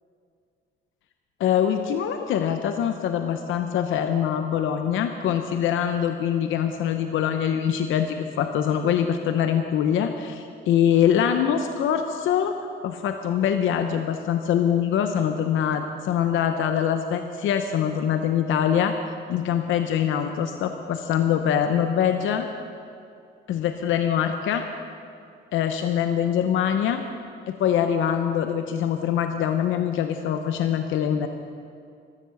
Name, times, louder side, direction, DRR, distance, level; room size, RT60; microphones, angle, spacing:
voice 1, 1.4-12.5 12.8-19.0 19.3-22.5 23.5-24.7 25.5-27.0 27.5-31.3, left 9 dB, 80° left, 7 dB, 0.8 m, -24 dB
13.5 x 12.5 x 7.0 m, 2.4 s
cardioid pair, 90°, 20 cm